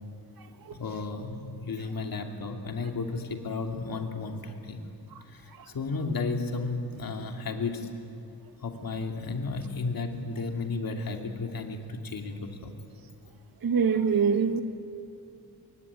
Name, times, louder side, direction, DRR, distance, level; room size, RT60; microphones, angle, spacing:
voice 1, 0.8-4.8 5.3-7.9 8.6-12.7, left 3 dB, 60° left, 3 dB, 2.8 m, -33 dB
voice 2, 13.6-14.6, right 6 dB, 60° right, 7 dB, 1.6 m, -23 dB
25.0 x 22.5 x 9.7 m, 2.6 s
wide cardioid pair, 125°, 39 cm